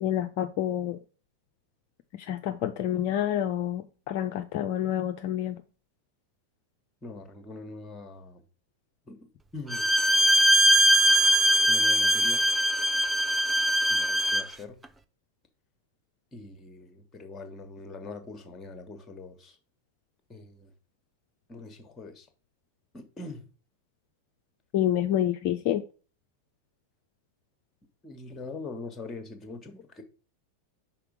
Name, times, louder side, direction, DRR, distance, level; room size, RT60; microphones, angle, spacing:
voice 1, 0.0-1.0 2.1-5.6 24.7-25.8, left 11 dB, 45° left, 0.5 m, -28 dB
voice 2, 7.0-8.4 9.1-9.2 9.5-9.9 11.7-12.4 13.9-14.8 16.3-19.6 20.3-20.7 21.5-22.3 22.9-23.5 28.0-30.0, left 3 dB, 15° left, 1.3 m, -42 dB
Bowed string instrument, 9.7-14.5, right 1 dB, 10° right, 0.5 m, -21 dB
5.9 x 4.0 x 4.9 m
figure-of-eight pair, 90°, 0 cm